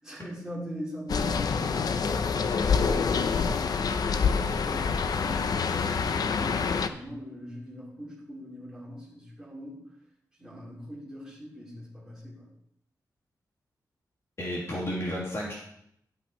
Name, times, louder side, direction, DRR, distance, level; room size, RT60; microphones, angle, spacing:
voice 1, 0.0-3.3 4.1-9.8 10.4-12.5, equal, 10° right, -7 dB, 4.4 m, -42 dB
sound 1, 1.1-6.9, left 5 dB, 65° left, 0.6 m, -26 dB
voice 2, 14.4-15.5, equal, 40° left, -4 dB, 2.2 m, -32 dB
12.0 x 5.7 x 4.4 m, 0.74 s
wide cardioid pair, 120°, 7 cm